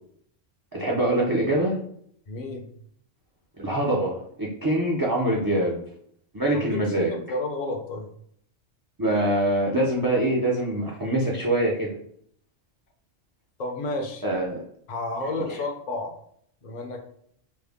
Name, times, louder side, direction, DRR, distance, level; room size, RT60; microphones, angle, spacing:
voice 1, 0.7-1.8 3.6-5.8 6.3-7.1 9.0-11.9 14.2-14.6 15.5-15.6, right 1 dB, 25° right, -3 dB, 0.4 m, -24 dB
voice 2, 2.3-2.7 6.5-8.1 13.6-14.2 14.9-16.1 16.6-17.0, left 2 dB, 45° left, 3 dB, 0.7 m, -31 dB
5.5 x 2.1 x 3.5 m, 0.66 s
omnidirectional pair, 1.3 m